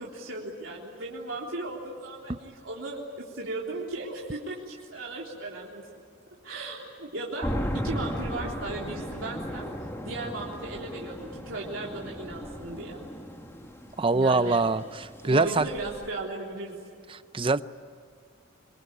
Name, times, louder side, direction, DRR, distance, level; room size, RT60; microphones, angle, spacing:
voice 1, 0.0-5.8 6.4-9.7 10.0-13.1 14.1-14.6 15.2-16.8, right 2 dB, 80° right, -3 dB, 3.7 m, -36 dB
sound 1, 7.4-16.1, equal, 15° left, 2.0 m, -36 dB
voice 2, 14.0-15.7 17.1-17.6, right 3 dB, 25° right, 14 dB, 0.6 m, -24 dB
25.5 x 23.0 x 10.0 m, 2.1 s
head